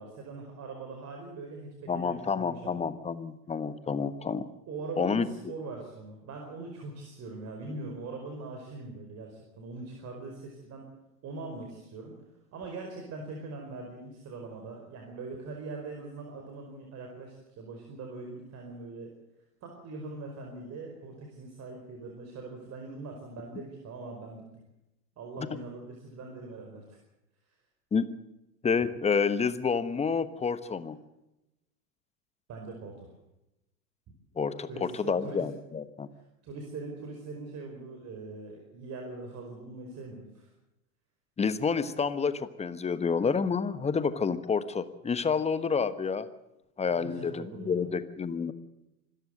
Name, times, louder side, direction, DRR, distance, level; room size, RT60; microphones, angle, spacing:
voice 1, 0.0-2.9 4.7-10.9 11.2-12.1 12.5-19.1 19.6-24.4 25.2-27.0 32.5-33.1 34.7-35.4 36.4-40.5 46.9-47.9, right 3 dB, 35° right, 2 dB, 5.1 m, -42 dB
voice 2, 1.9-4.5 5.0-5.3 27.9-28.1 28.6-31.0 34.4-36.1 41.4-46.3 46.8-48.5, left 5 dB, 15° left, 13 dB, 1.2 m, -29 dB
25.5 x 14.0 x 7.8 m, 0.91 s
hypercardioid pair, 95°, 47 cm